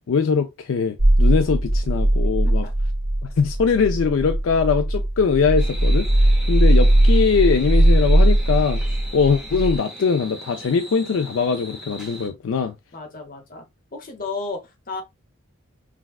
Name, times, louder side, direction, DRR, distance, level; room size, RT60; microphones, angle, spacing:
voice 1, 0.1-2.7 3.2-12.8, left 5 dB, 70° left, 0.4 m, -22 dB
sound 1, 1.0-9.8, right 1 dB, 50° right, 0.9 m, -18 dB
sound 2, 5.6-12.3, equal, 5° right, 0.7 m, -38 dB
voice 2, 12.9-13.6 13.9-15.0, left 3 dB, 40° left, 1.0 m, -33 dB
5.9 x 2.3 x 2.3 m
head